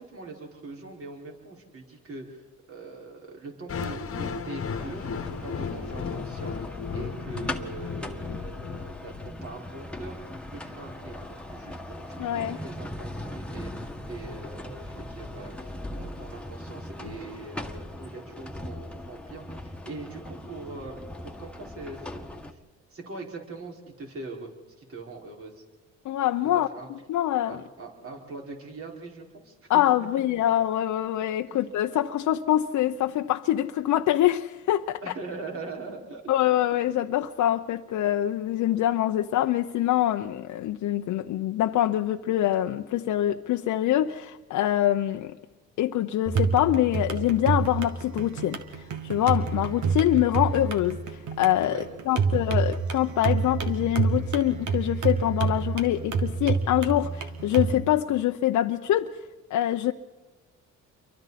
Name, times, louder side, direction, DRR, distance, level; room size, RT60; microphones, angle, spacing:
voice 1, 0.0-5.1 5.4-10.2 10.5-22.6 22.9-24.5 24.8-25.6 26.5-26.9 27.5-30.3 31.5-31.6 35.0-36.2 51.6-52.3, right 3 dB, 50° right, 5.0 m, -42 dB
sound 1, 3.7-9.7, left 6 dB, 45° left, 1.3 m, -35 dB
sound 2, 4.8-22.5, left 1 dB, 5° left, 1.7 m, -39 dB
voice 2, 12.2-12.6 26.0-26.7 27.1-27.6 29.7-35.0 36.3-45.3 45.8-59.2 59.5-59.9, left 13 dB, 80° left, 0.8 m, -25 dB
sound 3, 46.3-57.8, right 5 dB, 75° right, 2.0 m, -28 dB
29.0 x 24.0 x 4.2 m
cardioid pair, 90°, 30 cm